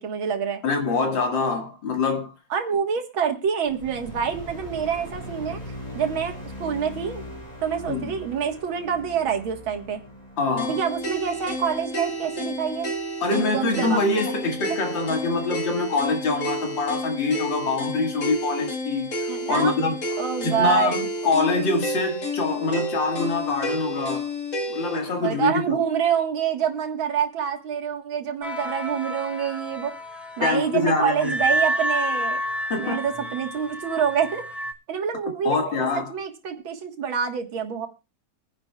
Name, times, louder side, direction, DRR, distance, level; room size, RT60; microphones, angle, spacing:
voice 1, 0.0-0.6 2.5-5.6 5.9-6.3 6.6-7.2 7.6-10.0 10.7-12.9 13.3-14.0 19.3-19.7 20.2-21.1 25.2-29.9 30.4-32.4 32.8-34.4 34.9-37.9, right 8 dB, 80° right, 2.3 m, -26 dB
voice 2, 0.6-2.3 7.8-8.1 10.4-10.8 13.2-19.1 19.5-20.0 20.4-21.0 21.2-24.3 24.7-25.8 30.4-31.3 32.7-33.0 35.4-36.1, left 3 dB, 70° left, 2.6 m, -24 dB
sound 1, 3.7-14.1, left 1 dB, 20° left, 4.2 m, -41 dB
sound 2, 10.6-25.0, left 1 dB, 40° left, 1.8 m, -31 dB
sound 3, 28.4-34.7, right 1 dB, ahead, 0.7 m, -29 dB
23.5 x 10.0 x 2.3 m
omnidirectional pair, 2.1 m